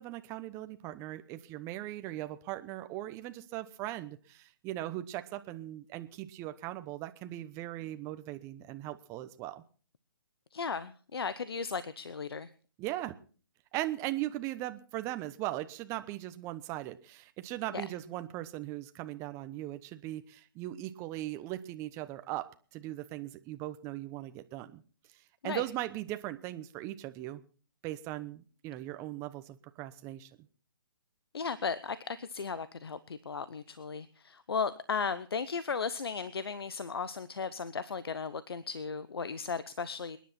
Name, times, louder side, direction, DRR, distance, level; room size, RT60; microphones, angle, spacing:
voice 1, 0.0-9.6 12.8-13.1 13.7-22.5 22.7-24.8 25.4-27.4 27.8-30.3, right 15 dB, 20° right, 9 dB, 0.9 m, -39 dB
voice 2, 10.5-12.5 17.7-17.8 25.4-25.6 31.3-40.2, left 5 dB, 75° left, 16 dB, 0.9 m, -36 dB
27.0 x 10.5 x 4.3 m, 0.41 s
hypercardioid pair, 140°, 13 cm